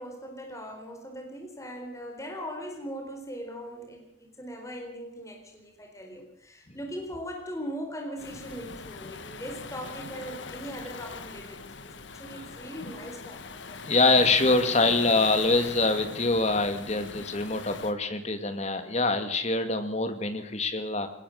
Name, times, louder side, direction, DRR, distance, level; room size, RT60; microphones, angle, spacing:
voice 1, 0.0-13.8, equal, 15° left, 2 dB, 4.4 m, -40 dB
Waves surf, 8.2-17.9, left 4 dB, 70° left, 1.4 m, -41 dB
voice 2, 13.9-21.1, left 3 dB, 35° left, 8 dB, 2.2 m, -24 dB
20.5 x 19.0 x 6.7 m, 0.68 s
head